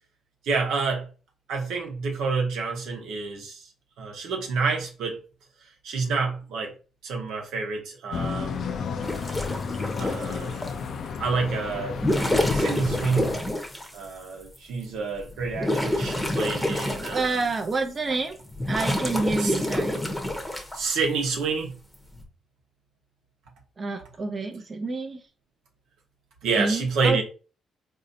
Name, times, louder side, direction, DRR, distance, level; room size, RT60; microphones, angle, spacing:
voice 1, 0.4-1.1 1.5-3.7 4.0-5.2 5.6-6.7 7.0-8.8 10.0-10.6 11.2-12.0 12.5-13.3 13.9-17.4 19.4-19.5 20.7-21.7 26.4-27.2, right 4 dB, 85° right, 1.0 m, -28 dB
sound 1, 8.1-13.4, left 5 dB, 60° left, 0.4 m, -32 dB
sound 2, 9.0-10.8 11.9-14.0 14.6-14.7 15.2-17.7 18.1-20.8 21.9-22.2, left 1 dB, 10° left, 0.8 m, -28 dB
voice 2, 17.1-18.4 18.6-20.0 23.8-25.2 26.6-27.2, right 3 dB, 35° right, 0.5 m, -28 dB
4.0 x 2.7 x 2.6 m
cardioid pair, 90°, 0 cm